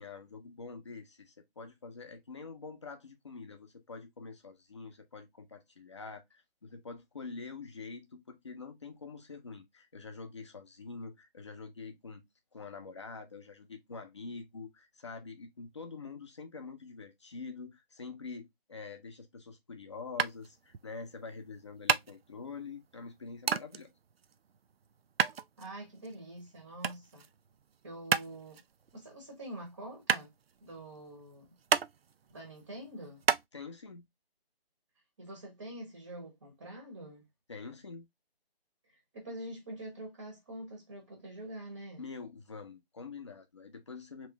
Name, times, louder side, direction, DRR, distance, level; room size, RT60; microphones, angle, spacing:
voice 1, 0.0-12.2 12.5-23.9 33.5-34.1 37.5-38.1 42.0-44.3, left 4 dB, 30° left, 0.6 m, -46 dB
sound 1, 20.2-33.4, right 7 dB, 70° right, 0.5 m, -33 dB
voice 2, 25.6-27.3 27.8-28.6 28.9-30.3 30.6-31.5 32.3-33.2 35.2-37.3 38.9-42.1, right 1 dB, 20° right, 0.8 m, -45 dB
3.1 x 3.0 x 3.3 m
figure-of-eight pair, 160°, 31 cm